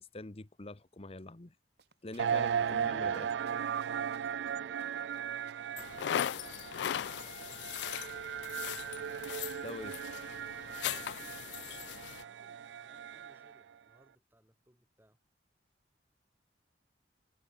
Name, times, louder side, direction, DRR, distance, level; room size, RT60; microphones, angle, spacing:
voice 1, 0.0-1.6 2.0-3.4 9.6-10.0, left 2 dB, 35° left, 1.0 m, -45 dB
sound 1, 1.8-2.5 2.8-2.9 3.1-4.5 4.8-5.2 5.5-6.3, right 6 dB, 65° right, 2.8 m, -62 dB
sound 2, 2.2-13.6, right 8 dB, 85° right, 0.4 m, -37 dB
voice 2, 4.1-8.1 10.8-15.2, right 1 dB, 10° right, 2.3 m, -66 dB
sound 3, 5.8-12.2, left 10 dB, 75° left, 0.3 m, -39 dB
head